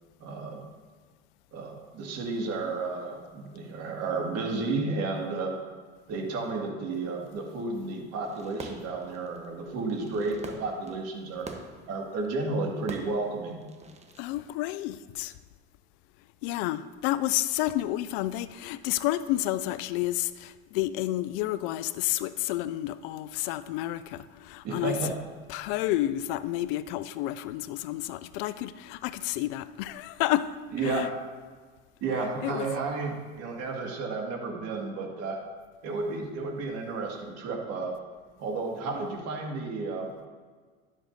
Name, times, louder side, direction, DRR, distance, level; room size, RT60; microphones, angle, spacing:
voice 1, 0.2-0.6 1.5-5.6 6.1-11.5 11.9-13.7 24.6-25.2 30.7-31.1 32.0-35.4 35.8-37.9 38.4-40.1, right 3 dB, 55° right, 2.1 m, -32 dB
Fireworks, 8.2-14.3, right 3 dB, 20° right, 1.0 m, -46 dB
voice 2, 14.2-15.3 16.4-25.0 25.5-30.5 30.8-31.1 32.4-32.7, left 15 dB, 65° left, 0.5 m, -30 dB
11.5 x 7.3 x 2.7 m
hypercardioid pair, 85°, 32 cm